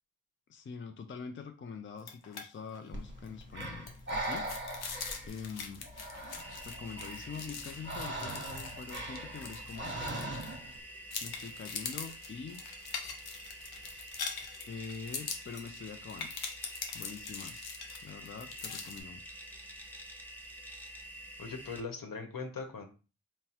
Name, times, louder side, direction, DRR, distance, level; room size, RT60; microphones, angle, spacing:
voice 1, 0.5-4.5 5.3-5.9 6.6-10.1 11.2-12.6 14.7-16.4 16.9-17.7 18.0-19.3, left 5 dB, 35° left, 6 dB, 0.5 m, -44 dB
sound 1, 2.0-2.4 2.7-2.9 3.3-10.7 11.1-19.0, left 5 dB, 85° left, 0.8 m, -43 dB
Breathing, 2.9-10.8, right 1 dB, 30° right, 1.2 m, -41 dB
sound 2, 6.4-21.8, right 1 dB, 5° left, 0.9 m, -48 dB
voice 2, 21.4-22.8, left 4 dB, 65° left, 5 dB, 1.1 m, -40 dB
3.9 x 2.1 x 4.4 m, 0.34 s
cardioid pair, 50°, 37 cm